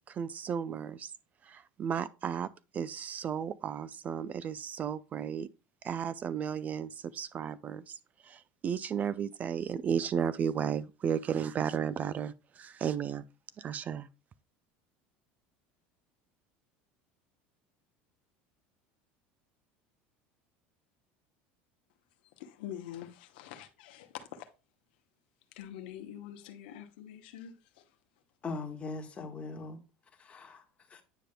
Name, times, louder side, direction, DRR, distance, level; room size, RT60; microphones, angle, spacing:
voice 1, 0.1-1.1 1.4-5.5 5.8-7.9 8.2-13.2 13.6-14.1, right 8 dB, 30° right, 0.3 m, -34 dB
voice 2, 22.4-24.5 25.5-27.8, left 11 dB, 85° left, 0.8 m, -45 dB
voice 3, 28.4-29.8 30.2-30.6 30.9-31.0, left 3 dB, 25° left, 1.3 m, -40 dB
9.1 x 5.0 x 2.2 m
supercardioid pair, 120°, 5 cm